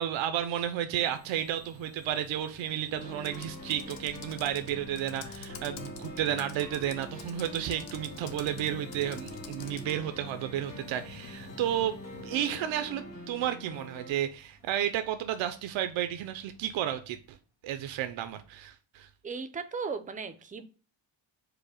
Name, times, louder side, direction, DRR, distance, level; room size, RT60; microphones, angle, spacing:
voice 1, 0.0-17.4 17.6-19.1, right 11 dB, 75° right, 0.5 m, -32 dB
sound 1, 0.9-16.2, left 4 dB, 90° left, 1.2 m, -52 dB
sound 2, 2.9-14.1, left 1 dB, 45° left, 1.3 m, -45 dB
Computer keyboard, 3.2-10.0, left 8 dB, 65° left, 0.7 m, -49 dB
voice 2, 19.2-20.6, right 5 dB, 20° right, 0.4 m, -36 dB
4.8 x 2.1 x 4.7 m
cardioid pair, 120°, 47 cm